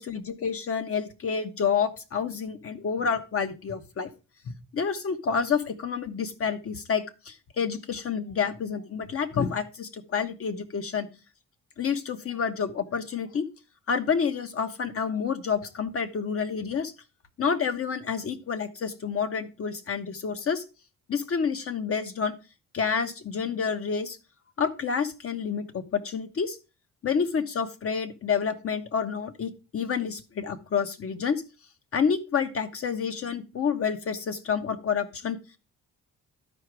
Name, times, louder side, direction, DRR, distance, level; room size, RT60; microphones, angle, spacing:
voice 1, 0.0-4.1 4.4-11.1 11.8-13.4 13.9-16.9 17.4-20.6 21.1-22.3 22.7-24.2 24.6-26.6 27.0-31.4 31.9-35.4, left 6 dB, 50° left, 9 dB, 1.2 m, -29 dB
12.0 x 5.0 x 4.7 m, 0.31 s
cardioid pair, 90°, 30 cm